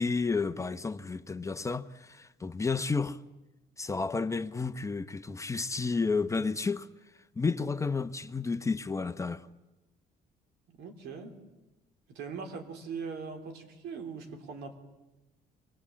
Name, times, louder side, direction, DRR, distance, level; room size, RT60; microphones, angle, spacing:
voice 1, 0.0-3.2 3.8-6.9 7.4-9.5, left 4 dB, 20° left, 0.8 m, -31 dB
voice 2, 10.7-11.3 12.1-14.8, right 5 dB, 80° right, 3.6 m, -40 dB
25.0 x 19.5 x 8.7 m
cardioid pair, 110°, 17 cm